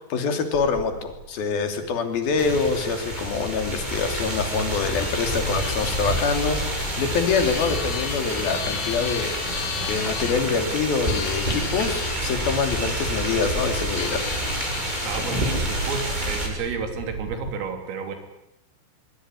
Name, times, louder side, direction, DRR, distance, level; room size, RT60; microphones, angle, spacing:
voice 1, 0.1-14.2, left 5 dB, 50° left, 6 dB, 4.5 m, -25 dB
Bird / Wind, 0.5-17.5, right 5 dB, 50° right, 3.2 m, -41 dB
sound 1, 2.4-16.5, right 1 dB, 10° right, 6.9 m, -28 dB
sound 2, 4.9-10.4 11.0-12.2 13.9-15.4, left 11 dB, 70° left, 2.9 m, -35 dB
voice 2, 15.1-18.2, right 5 dB, 85° right, 6 dB, 5.9 m, -31 dB
24.5 x 24.0 x 9.9 m, 0.84 s
omnidirectional pair, 5.8 m